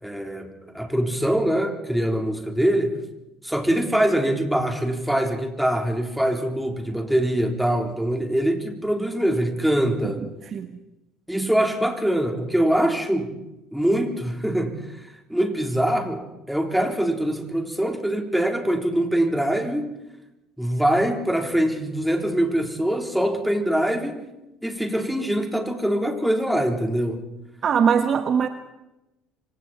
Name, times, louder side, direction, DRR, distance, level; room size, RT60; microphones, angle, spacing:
voice 1, 0.0-2.9 3.4-10.3 11.3-13.3 13.7-14.8 15.3-16.2 16.5-19.9 20.6-24.2 24.6-27.2, right 1 dB, 5° right, 3 dB, 3.9 m, -23 dB
voice 2, 27.6-28.5, right 7 dB, 40° right, 9 dB, 1.2 m, -21 dB
26.0 x 25.5 x 4.4 m, 0.94 s
figure-of-eight pair, 60°, 0 cm